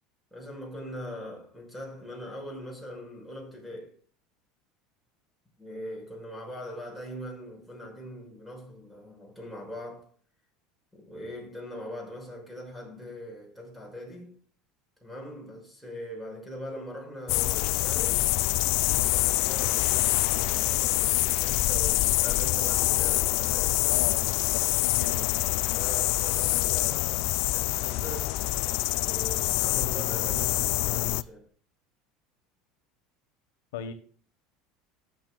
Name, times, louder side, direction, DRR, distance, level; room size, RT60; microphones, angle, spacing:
voice 1, 0.3-4.0 5.6-10.1 10.9-14.3 15.0-18.3 19.0-24.0 25.7-28.4 29.0-31.5, equal, ahead, 5.7 m, -41 dB
sound 1, 17.3-31.2, left 20 dB, 65° left, 0.4 m, -26 dB
voice 2, 23.9-25.5 33.7-33.9, left 8 dB, 90° left, 1.3 m, -38 dB
18.5 x 7.5 x 2.3 m
supercardioid pair, 110°, 0 cm